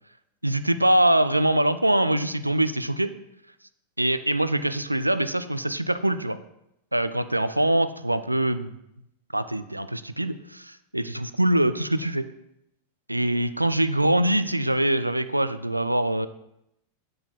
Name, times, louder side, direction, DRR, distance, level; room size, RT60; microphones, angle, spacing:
voice 1, 0.4-3.1 4.0-6.4 6.9-8.7 9.3-12.2 13.1-16.3, right 1 dB, 85° right, 12 dB, 0.3 m, -23 dB
7.8 x 3.8 x 4.3 m, 0.82 s
figure-of-eight pair, 90°, 0 cm